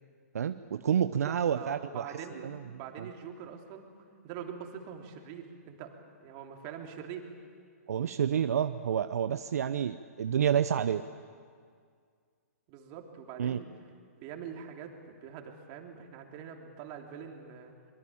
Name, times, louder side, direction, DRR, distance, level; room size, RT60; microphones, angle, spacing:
voice 1, 0.3-2.1 2.4-2.6 3.0-3.1 7.9-11.0 13.4-13.6, right 8 dB, 70° right, 11 dB, 0.8 m, -29 dB
voice 2, 1.2-3.9 4.2-7.3 12.7-13.7 14.1-17.7, right 7 dB, 35° right, 3 dB, 3.3 m, -44 dB
24.0 x 23.0 x 8.7 m, 2.1 s
hypercardioid pair, 135°, 9 cm